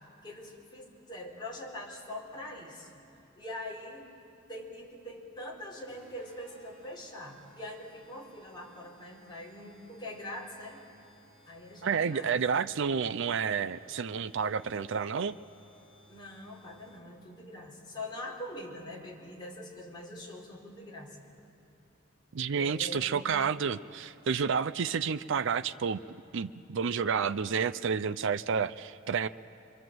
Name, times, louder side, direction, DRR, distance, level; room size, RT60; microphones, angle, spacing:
voice 1, 0.2-3.0 3.4-4.1 4.5-10.8 11.5-12.3 16.1-21.2 22.5-23.3, left 1 dB, 20° left, -4 dB, 4.1 m, -43 dB
sound 1, 5.9-17.3, right 1 dB, 10° right, 5.1 m, -60 dB
voice 2, 11.8-15.4 22.3-26.0 26.3-29.3, right 6 dB, 60° right, 13 dB, 0.5 m, -30 dB
25.0 x 24.5 x 7.8 m, 3.0 s
head